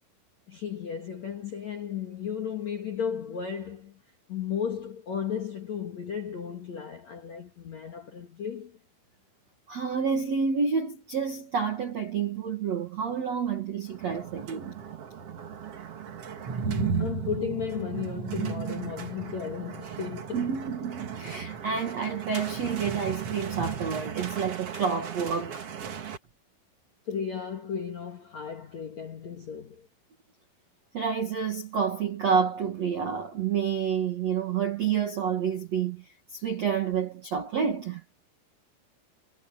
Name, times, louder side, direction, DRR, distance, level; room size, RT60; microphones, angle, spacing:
voice 1, 0.5-4.0 4.3-8.8 16.6-20.6 27.1-29.9, left 7 dB, 75° left, 1.6 m, -34 dB
voice 2, 9.7-14.7 20.3-25.7 30.9-38.0, right 6 dB, 80° right, 1.5 m, -29 dB
sound 1, 13.9-26.2, right 7 dB, 60° right, 1.6 m, -35 dB
omnidirectional pair, 5.9 m